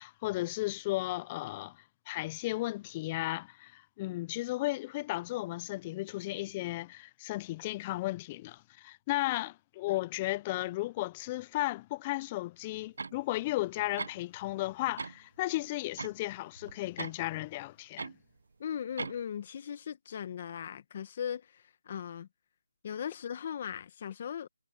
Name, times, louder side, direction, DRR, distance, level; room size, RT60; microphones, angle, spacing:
voice 1, 0.0-18.1, left 18 dB, 20° left, 0.5 m, -35 dB
sound 1, 13.0-13.2 14.0-14.5 14.8-15.2 16.0-17.1 18.0-18.2 19.0-19.3, right 4 dB, 65° right, 0.8 m, -40 dB
voice 2, 18.6-22.3 22.8-24.5, left 8 dB, 35° left, 1.3 m, -38 dB
figure-of-eight pair, 160°, 0 cm